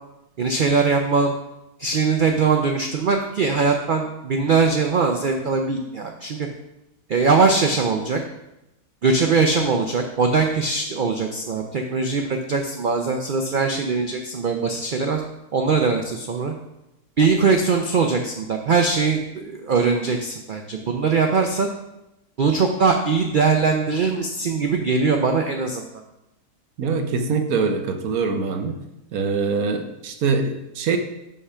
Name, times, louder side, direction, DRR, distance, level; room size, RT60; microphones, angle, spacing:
voice 1, 0.4-1.3 1.8-6.5 7.1-8.2 9.0-15.2 15.5-16.5 17.2-21.7 22.4-25.8, right 4 dB, 90° right, 4 dB, 0.4 m, -21 dB
voice 2, 26.8-28.7 29.1-31.0, right 5 dB, 75° right, 6 dB, 1.2 m, -23 dB
5.5 x 4.8 x 5.6 m, 0.90 s
omnidirectional pair, 1.6 m